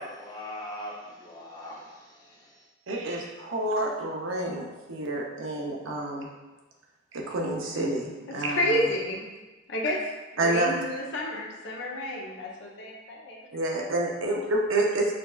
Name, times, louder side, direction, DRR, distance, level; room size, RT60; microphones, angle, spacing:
voice 1, 0.0-2.6, left 1 dB, 20° left, -5 dB, 0.7 m, -41 dB
voice 2, 2.9-6.3 7.1-8.8 10.4-10.8 13.5-15.1, right 2 dB, 75° right, 0 dB, 0.6 m, -28 dB
voice 3, 8.5-9.2 9.7-10.0 10.3-13.4, left 1 dB, 65° left, -2 dB, 0.6 m, -30 dB
4.9 x 2.4 x 2.3 m, 1.2 s
head